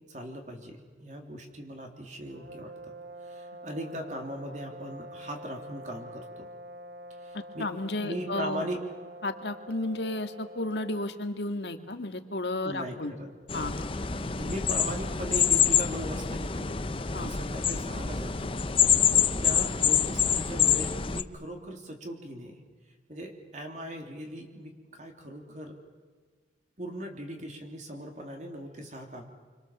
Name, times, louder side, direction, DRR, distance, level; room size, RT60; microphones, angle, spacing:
voice 1, 0.1-2.9 3.2-6.5 7.2-7.7 8.0-8.8 12.6-13.3 14.0-22.6 23.1-25.8 26.8-29.2, right 1 dB, 40° right, 3 dB, 3.2 m, -39 dB
sound 1, 2.3-11.2, right 1 dB, 70° right, 1.0 m, -46 dB
voice 2, 7.3-8.6 9.2-13.1 13.5-13.9 17.1-17.3, left 2 dB, 70° left, 6 dB, 1.9 m, -33 dB
sound 2, 13.5-21.2, left 8 dB, 30° left, 0.7 m, -26 dB
27.5 x 25.0 x 7.3 m, 1.5 s
head